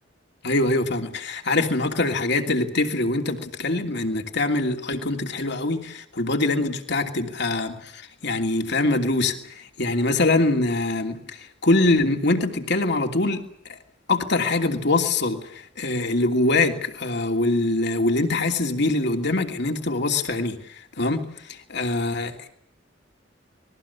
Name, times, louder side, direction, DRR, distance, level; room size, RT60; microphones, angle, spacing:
voice 1, 0.4-13.4 14.1-22.5, left 2 dB, 60° left, 2.9 m, -24 dB
29.5 x 21.5 x 7.1 m
head